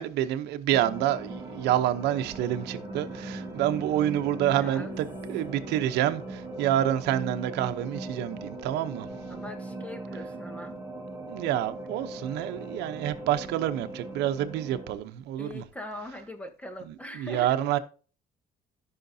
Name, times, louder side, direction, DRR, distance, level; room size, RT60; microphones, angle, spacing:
voice 1, 0.0-9.1 11.3-15.6 16.9-17.8, right 12 dB, 85° right, 0.8 m, -28 dB
sound 1, 0.7-15.0, right 2 dB, 15° right, 2.0 m, -39 dB
voice 2, 4.5-4.9 9.3-10.8 12.6-12.7 15.4-17.6, left 1 dB, 10° left, 1.5 m, -41 dB
14.5 x 5.7 x 2.7 m
cardioid pair, 110°, 17 cm